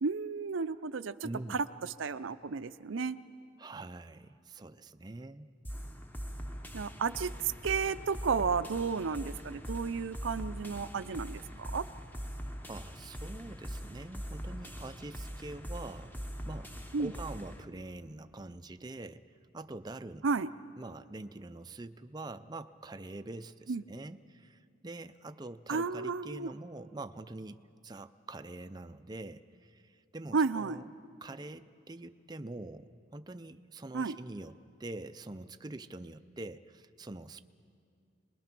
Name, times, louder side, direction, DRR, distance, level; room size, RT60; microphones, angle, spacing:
voice 1, 0.0-3.2 6.7-11.8 16.9-17.1 20.2-20.5 23.7-23.8 25.7-26.5 30.3-30.8 33.9-34.2, right 5 dB, 80° right, 12 dB, 0.6 m, -33 dB
voice 2, 1.2-1.6 3.6-5.5 12.7-16.2 16.4-20.2 20.8-30.9 31.2-37.4, right 2 dB, 20° right, 9 dB, 0.5 m, -45 dB
sound 1, 5.6-17.6, equal, 10° left, 0.9 m, -42 dB
27.0 x 21.0 x 6.0 m, 2.4 s
head